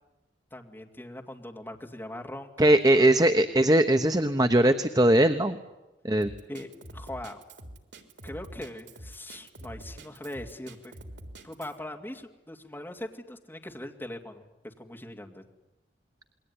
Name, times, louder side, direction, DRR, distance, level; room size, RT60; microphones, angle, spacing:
voice 1, 0.5-3.2 6.5-7.4 8.2-11.0 11.4-15.4, left 1 dB, 10° left, 3 dB, 2.5 m, -41 dB
voice 2, 2.6-5.6 6.0-6.3, right 1 dB, 20° right, 8 dB, 1.0 m, -20 dB
Drum kit, 6.2-11.8, right 1 dB, 80° right, 3.7 m, -45 dB
28.0 x 21.5 x 9.8 m, 1.0 s
head